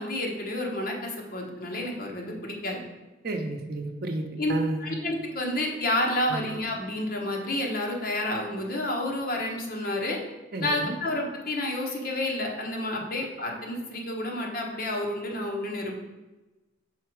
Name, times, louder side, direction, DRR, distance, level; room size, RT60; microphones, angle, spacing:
voice 1, 0.0-2.8 4.4-4.5 4.8-10.2 10.6-16.0, left 1 dB, 50° left, 0 dB, 1.1 m, -30 dB
voice 2, 3.2-4.2 4.5-4.9 6.3-6.4 10.5-10.9, right 2 dB, 55° right, 4 dB, 0.7 m, -31 dB
5.7 x 4.7 x 4.6 m, 1.1 s
head